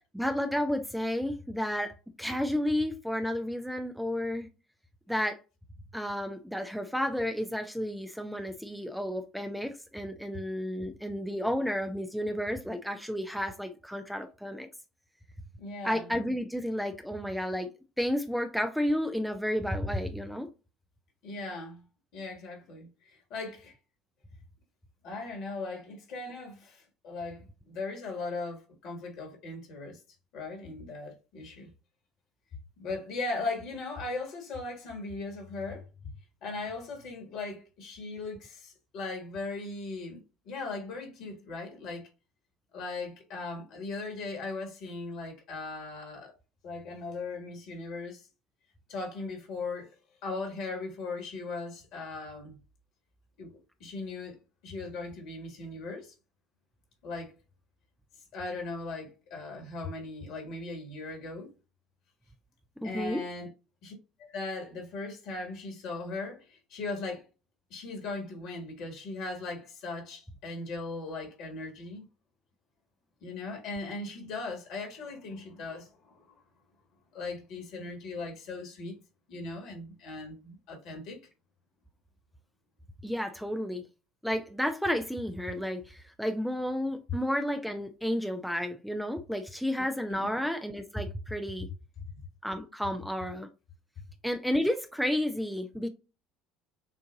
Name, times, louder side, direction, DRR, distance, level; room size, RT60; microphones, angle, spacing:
voice 1, 0.1-1.9 2.2-4.5 5.1-5.4 5.9-14.7 15.8-17.7 18.0-20.5 62.8-63.2 83.0-83.8 84.2-91.7 92.4-93.5 94.2-95.9, equal, ahead, 0.6 m, -31 dB
voice 2, 15.6-16.1 21.2-21.8 22.1-23.7 25.0-30.0 30.3-31.7 32.8-35.9 36.4-42.1 42.7-46.3 46.6-48.3 48.9-49.9 50.2-52.6 53.4-53.5 53.8-54.4 54.6-56.1 57.0-57.3 58.3-61.5 62.8-63.5 63.8-63.9 64.2-67.2 67.7-72.1 73.2-76.4 77.1-78.9 79.3-81.2 90.1-90.3, left 3 dB, 60° left, 1.8 m, -38 dB
6.6 x 2.6 x 2.6 m
figure-of-eight pair, 65°, 0 cm